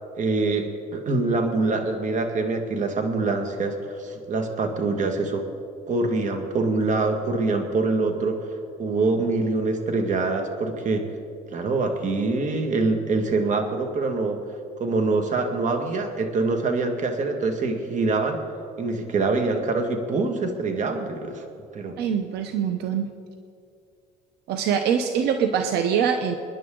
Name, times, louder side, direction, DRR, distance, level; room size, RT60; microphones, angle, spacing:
voice 1, 0.2-5.5 5.9-8.5 8.8-11.1 11.5-14.4 14.8-18.4 18.8-21.4 21.7-22.0, right 3 dB, 45° right, 5 dB, 1.9 m, -25 dB
voice 2, 22.0-23.1 24.5-26.3, right 7 dB, 80° right, 6 dB, 0.9 m, -23 dB
27.0 x 10.5 x 3.9 m, 2.4 s
cardioid pair, 110°, 17 cm